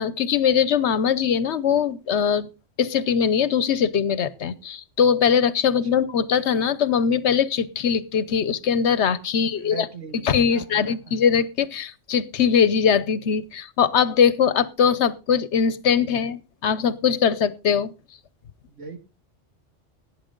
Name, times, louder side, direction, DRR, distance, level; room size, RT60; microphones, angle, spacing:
voice 1, 0.0-2.5 2.8-9.9 10.2-17.9, left 7 dB, 70° left, 17 dB, 1.0 m, -21 dB
voice 2, 9.3-11.2 18.7-19.0, right 4 dB, 80° right, 6 dB, 2.4 m, -40 dB
16.5 x 9.3 x 3.8 m, 0.29 s
omnidirectional pair, 1.2 m